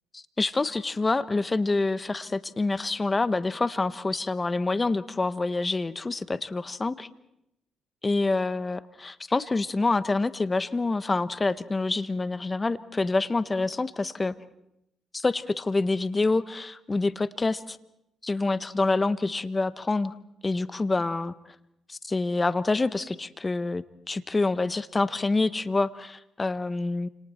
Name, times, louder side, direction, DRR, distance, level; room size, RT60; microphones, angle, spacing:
voice 1, 0.1-7.1 8.0-14.3 15.1-17.8 18.2-20.1 20.4-21.3 21.9-27.1, left 3 dB, 25° left, 14 dB, 1.0 m, -27 dB
29.0 x 27.0 x 4.4 m, 0.82 s
cardioid pair, 90°, 0 cm